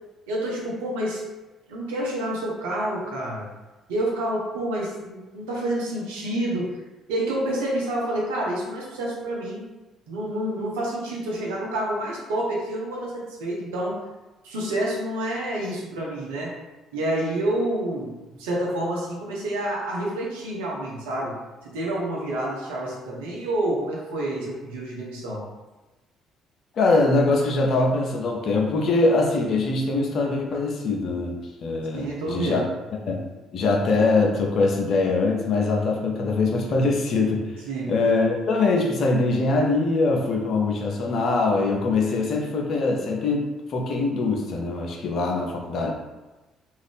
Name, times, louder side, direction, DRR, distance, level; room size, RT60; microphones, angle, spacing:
voice 1, 0.3-1.2 1.7-3.5 3.9-6.8 7.1-9.6 10.1-14.0 14.4-16.5 16.9-25.4 31.9-32.7 37.7-37.9, right 1 dB, 80° right, -3 dB, 0.7 m, -28 dB
voice 2, 26.7-32.7 33.1-33.2 33.5-37.4 37.9-45.9, left 3 dB, 55° left, 0 dB, 0.6 m, -23 dB
2.7 x 2.5 x 3.4 m, 1.1 s
hypercardioid pair, 50°, 0 cm